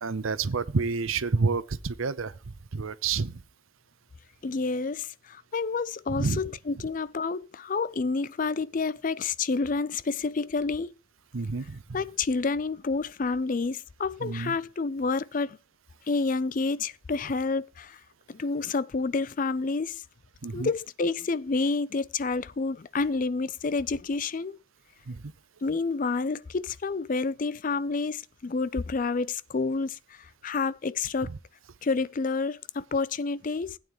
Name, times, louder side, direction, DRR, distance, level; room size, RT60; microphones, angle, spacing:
voice 1, 0.0-3.4 6.1-6.4 11.3-11.8 14.2-14.6 20.4-20.7 25.1-25.3 31.2-31.4, right 4 dB, 85° right, 0.7 m, -29 dB
voice 2, 4.4-10.9 11.9-15.6 16.1-18.0 18.3-20.0 20.5-24.6 25.6-31.3 31.8-33.8, left 4 dB, 40° left, 0.4 m, -29 dB
16.0 x 9.1 x 3.0 m
head